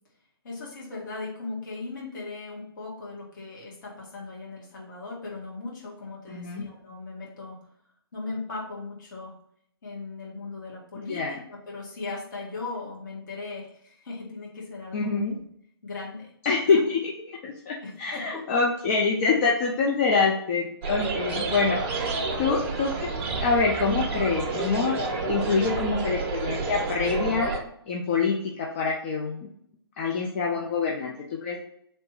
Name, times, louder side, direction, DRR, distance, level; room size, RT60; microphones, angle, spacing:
voice 1, 0.4-7.7 8.1-9.3 9.8-15.4 15.8-16.3 16.6-16.8 17.8-18.4 22.3-22.4 25.4-25.8 30.5-30.7, left 3 dB, 50° left, -4 dB, 1.7 m, -38 dB
voice 2, 6.3-6.7 11.1-11.4 14.9-15.4 16.4-17.1 17.4-22.0 22.4-23.1 23.4-25.0 25.3-27.5 27.9-29.5 30.0-31.1 31.4-31.6, left 4 dB, 30° left, -2 dB, 0.5 m, -25 dB
sound 1, 20.8-27.6, right 3 dB, 25° right, 0.7 m, -29 dB
3.2 x 3.0 x 4.4 m, 0.69 s
figure-of-eight pair, 130°, 13 cm